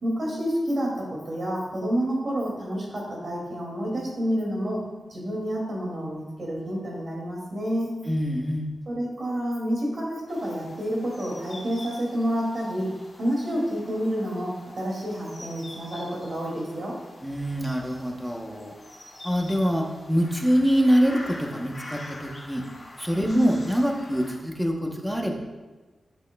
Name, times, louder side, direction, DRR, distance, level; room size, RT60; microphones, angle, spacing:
voice 1, 0.0-4.8 5.1-7.9 8.9-12.9 13.2-16.9 23.2-23.6, equal, 45° right, -2 dB, 2.3 m, -29 dB
voice 2, 8.1-8.7 17.2-18.7 19.2-22.6 23.0-25.3, equal, 5° right, 1 dB, 0.8 m, -25 dB
sound 1, 10.3-24.4, left 1 dB, 25° left, 2.0 m, -45 dB
12.0 x 6.0 x 2.3 m, 1.2 s
wide cardioid pair, 150°, 0 cm